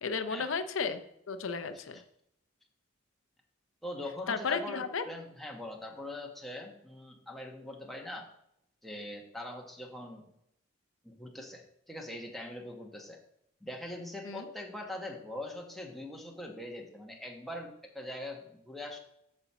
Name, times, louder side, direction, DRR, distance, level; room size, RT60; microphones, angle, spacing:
voice 1, 0.0-2.0 4.3-5.1 14.2-14.5, left 5 dB, 80° left, 9 dB, 0.6 m, -34 dB
voice 2, 3.8-8.3 8.8-10.3 11.0-13.2 13.6-19.0, left 1 dB, ahead, 0 dB, 1.2 m, -42 dB
8.0 x 4.3 x 7.0 m, 0.77 s
head